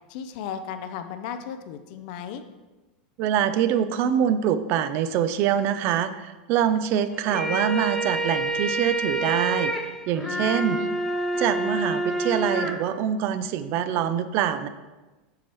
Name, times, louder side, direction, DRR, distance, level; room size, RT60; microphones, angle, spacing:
voice 1, 0.1-2.4 10.2-10.9, left 8 dB, 60° left, 9 dB, 0.4 m, -35 dB
voice 2, 3.2-9.7 10.1-10.8 11.3-14.7, right 9 dB, 50° right, 12 dB, 0.4 m, -24 dB
sound 1, 7.1-12.7, right 1 dB, ahead, 0.8 m, -27 dB
7.0 x 4.7 x 3.0 m, 1.2 s
supercardioid pair, 125°, 5 cm